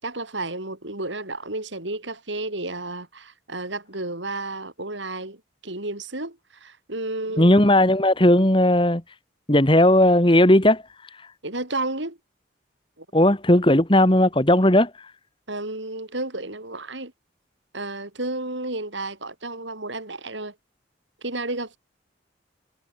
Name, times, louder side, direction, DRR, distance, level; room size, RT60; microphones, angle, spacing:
voice 1, 0.0-7.7 11.4-12.2 13.0-13.1 15.5-17.1 17.7-20.6 21.2-21.8, right 2 dB, 75° right, 5.4 m, -32 dB
voice 2, 7.4-9.0 9.5-10.8 13.1-14.9, left 1 dB, 25° left, 2.1 m, -16 dB
head